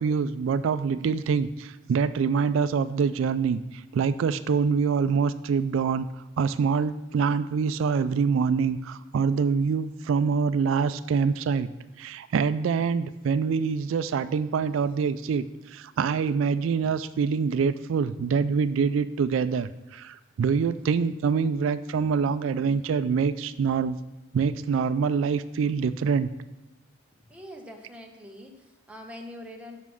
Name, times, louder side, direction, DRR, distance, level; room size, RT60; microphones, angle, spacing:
voice 1, 0.0-6.1 6.4-11.7 12.0-24.0 24.3-26.3, right 5 dB, 80° right, 13 dB, 0.3 m, -25 dB
voice 2, 27.3-29.8, left 1 dB, 5° right, 1 dB, 0.8 m, -43 dB
6.2 x 5.6 x 6.1 m, 1.0 s
head